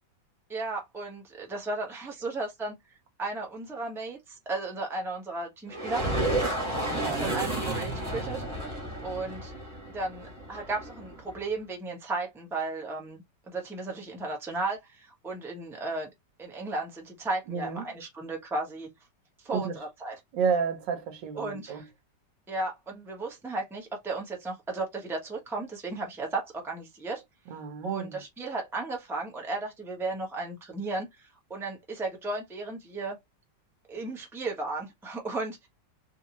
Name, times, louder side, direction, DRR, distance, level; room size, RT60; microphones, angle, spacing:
voice 1, 0.5-2.7 3.2-6.1 7.2-8.4 9.0-9.5 9.9-16.1 16.4-18.9 19.4-20.2 21.3-21.9 22.5-27.2 27.8-33.2 33.9-35.7, right 3 dB, ahead, 0.7 m, -34 dB
sound 1, 5.7-11.4, right 1 dB, 20° right, 1.2 m, -32 dB
voice 2, 6.9-7.3 17.5-17.9 19.5-19.7 20.3-21.8 27.5-28.2, right 6 dB, 85° right, 1.4 m, -31 dB
3.1 x 2.7 x 2.9 m
omnidirectional pair, 1.9 m